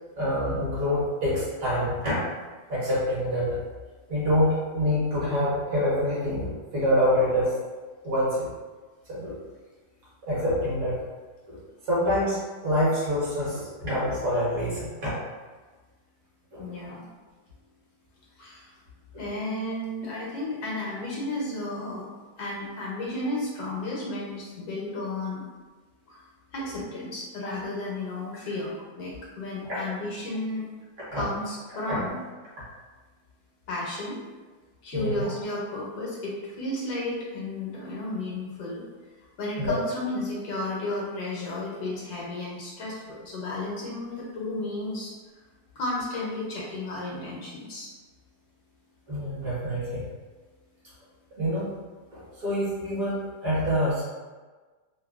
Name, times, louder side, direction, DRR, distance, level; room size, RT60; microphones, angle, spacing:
voice 1, 0.2-2.2 2.7-3.6 4.1-7.5 8.0-8.5 9.1-9.4 10.2-11.0 11.5-11.6 11.9-15.1 16.5-16.7 19.1-19.3 31.1-31.2 31.9-32.0 34.9-35.3 39.6-39.7 49.1-50.0 51.4-51.7 52.1-54.0, equal, 60° right, -9 dB, 1.4 m, -26 dB
voice 2, 16.6-17.0 18.4-18.7 19.2-22.0 22.4-25.4 26.1-26.2 26.5-30.7 31.1-32.2 33.7-34.2 34.8-38.8 39.4-45.1 45.8-47.9, left 2 dB, 70° left, -4 dB, 1.1 m, -33 dB
3.2 x 2.1 x 2.3 m, 1.3 s
omnidirectional pair, 1.9 m